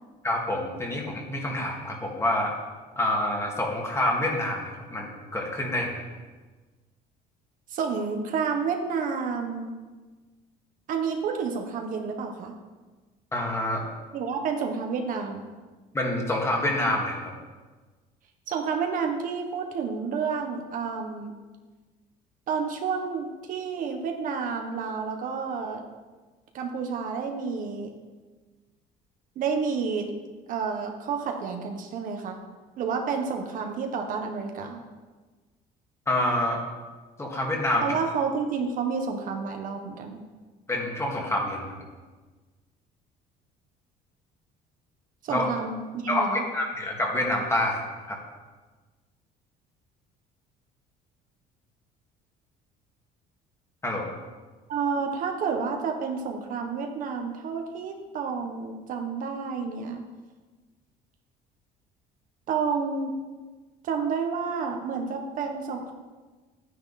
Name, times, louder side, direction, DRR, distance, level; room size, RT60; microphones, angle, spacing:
voice 1, 0.2-2.5 3.0-6.1 13.3-13.8 15.9-17.3 36.1-36.6 37.2-37.9 40.7-41.7 45.3-45.4 46.1-48.2 53.8-54.1, left 1 dB, 15° left, 0 dB, 2.1 m, -27 dB
voice 2, 7.7-9.7 10.9-12.5 14.1-15.4 18.5-21.3 22.5-25.8 26.5-27.9 29.3-30.1 30.5-32.4 32.8-34.8 37.8-40.2 45.2-46.4 54.7-60.0 62.5-63.1 63.8-65.9, right 5 dB, 55° right, 3 dB, 1.4 m, -30 dB
12.5 x 9.6 x 4.3 m, 1.3 s
cardioid pair, 145°, 17 cm